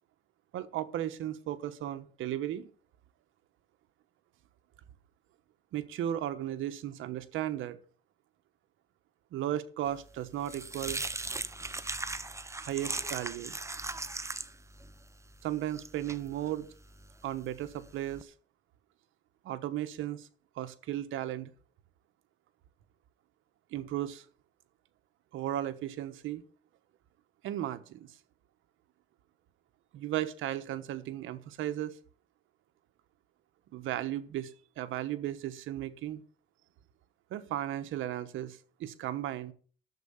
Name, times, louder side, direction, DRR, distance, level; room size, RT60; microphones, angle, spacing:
voice 1, 0.5-2.7 5.7-7.8 9.3-11.0 12.6-13.6 15.4-16.7 17.2-18.3 19.4-20.3 20.5-21.5 23.7-24.2 25.3-26.4 27.4-28.2 29.9-32.0 33.7-36.2 37.3-39.5, right 12 dB, 85° right, 1.1 m, -35 dB
sound 1, 10.0-18.2, right 2 dB, 15° right, 0.8 m, -39 dB
12.5 x 7.6 x 7.1 m
cardioid pair, 90°, 20 cm